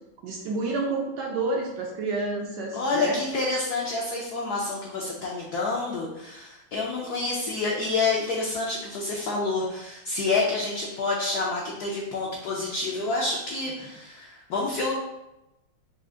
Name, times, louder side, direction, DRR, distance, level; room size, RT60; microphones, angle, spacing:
voice 1, 0.2-3.2, right 3 dB, 70° right, -1 dB, 1.0 m, -29 dB
voice 2, 2.7-14.9, left 3 dB, 75° left, -3 dB, 0.9 m, -28 dB
4.7 x 2.4 x 3.7 m, 0.92 s
omnidirectional pair, 2.4 m